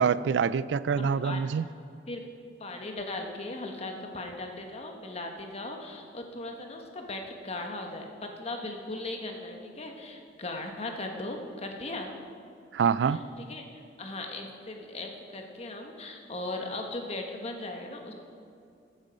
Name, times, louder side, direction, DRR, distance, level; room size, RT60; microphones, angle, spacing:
voice 1, 0.0-1.6 12.7-13.2, right 6 dB, 85° right, 18 dB, 0.3 m, -25 dB
voice 2, 1.0-1.4 2.1-2.2 2.6-12.1 13.0-18.1, left 2 dB, 40° left, 3 dB, 1.3 m, -38 dB
14.0 x 9.0 x 5.2 m, 2.4 s
head